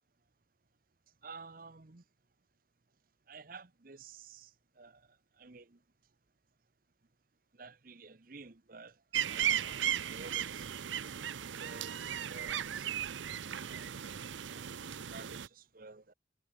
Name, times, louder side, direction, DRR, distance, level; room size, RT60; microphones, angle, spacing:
voice 1, 1.2-2.0 3.3-4.5 4.8-5.1 5.4-5.8 7.6-9.0 9.3-10.7 11.5-12.9 13.6-14.2 14.5-14.7 15.1-16.1, right 4 dB, 45° right, 1.0 m, -52 dB
sound 1, 9.1-15.5, right 10 dB, 80° right, 0.6 m, -36 dB
head